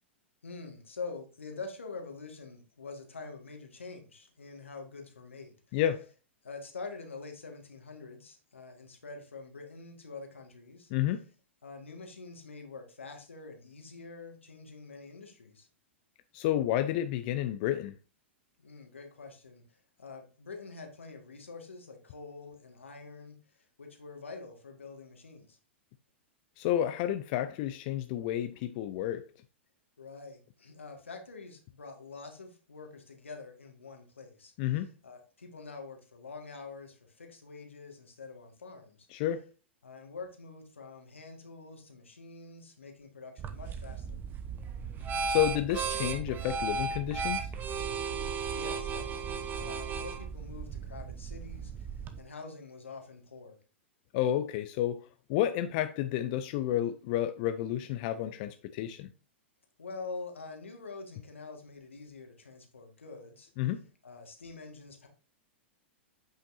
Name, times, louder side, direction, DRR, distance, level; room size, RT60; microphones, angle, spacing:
voice 1, 0.4-5.8 6.4-10.9 11.6-15.7 18.6-23.4 23.8-25.6 30.0-39.1 39.8-44.2 48.1-53.6 59.8-63.5 64.0-65.1, left 4 dB, 85° left, 1.8 m, -46 dB
voice 2, 5.7-6.1 10.9-11.2 16.3-17.9 26.6-29.2 34.6-34.9 39.1-39.5 45.3-47.5 54.1-59.1 63.6-63.8, left 12 dB, 45° left, 0.5 m, -30 dB
sound 1, 43.4-52.2, right 5 dB, 30° right, 0.9 m, -35 dB
8.5 x 5.7 x 2.6 m
hypercardioid pair, 105°, 7 cm